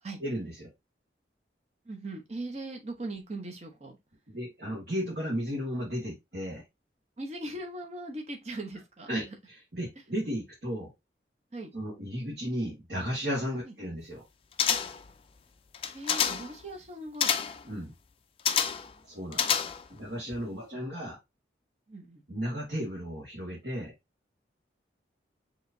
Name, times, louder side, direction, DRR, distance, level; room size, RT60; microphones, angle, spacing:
voice 1, 0.2-0.7 4.3-6.6 9.1-9.2 9.7-10.9 11.7-14.2 17.6-17.9 19.1-19.5 19.9-21.2 22.3-23.9, equal, 60° right, 1.7 m, -34 dB
voice 2, 1.8-4.0 7.2-9.4 11.5-11.7 13.7-13.8 14.7-14.8 15.8-17.3 18.9-19.1 20.5-20.6 21.9-22.2, right 2 dB, 35° right, 0.9 m, -40 dB
sound 1, 14.6-15.1 15.7-16.5 17.2-17.6 18.5-18.9 19.3-20.0 20.3-20.4, left 8 dB, 30° left, 0.3 m, -28 dB
4.9 x 3.0 x 2.6 m
head